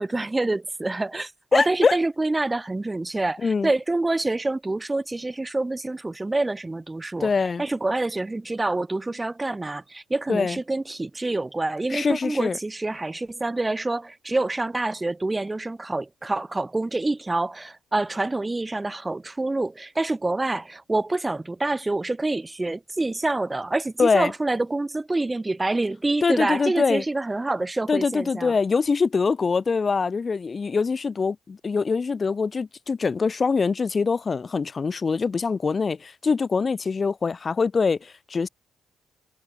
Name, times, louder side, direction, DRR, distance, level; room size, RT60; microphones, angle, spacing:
voice 1, 0.0-7.3 7.6-28.5, right 2 dB, 15° right, 0.4 m, -27 dB
voice 2, 1.5-2.0 3.4-3.7 7.2-7.6 10.3-10.6 11.9-12.6 24.0-24.3 26.2-27.0 27.9-38.5, left 5 dB, 35° left, 0.6 m, -23 dB
cardioid pair, 90°, 0 cm